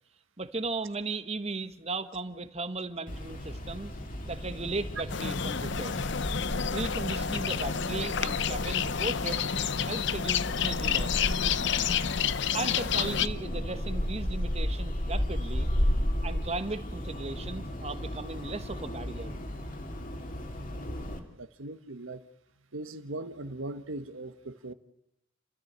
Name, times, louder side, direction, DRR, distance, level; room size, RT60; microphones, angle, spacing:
voice 1, 0.4-3.9 4.2-6.0 6.7-9.4 9.9-11.2 12.5-15.7 16.2-19.3, right 3 dB, 30° right, 11 dB, 1.3 m, -36 dB
sound 1, 3.1-21.2, equal, 40° left, 2.6 m, -34 dB
sound 2, 5.1-13.3, left 7 dB, 60° left, 0.8 m, -30 dB
voice 2, 21.4-22.2 22.7-24.7, right 2 dB, 80° right, 11 dB, 1.4 m, -39 dB
30.0 x 13.5 x 8.1 m, 0.78 s
head